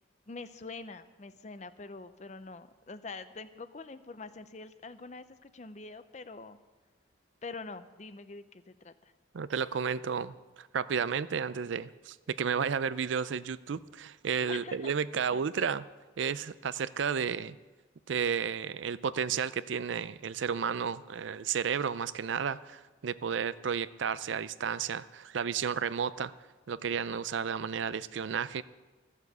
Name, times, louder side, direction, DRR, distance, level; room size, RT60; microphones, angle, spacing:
voice 1, 0.3-6.6 7.4-8.9 14.5-14.9 15.3-15.5, left 3 dB, 35° left, 12 dB, 0.6 m, -45 dB
voice 2, 9.3-15.8 16.2-17.6 18.1-26.3 26.7-28.6, right 6 dB, 70° right, 16 dB, 0.4 m, -32 dB
14.0 x 7.3 x 8.0 m, 1.3 s
head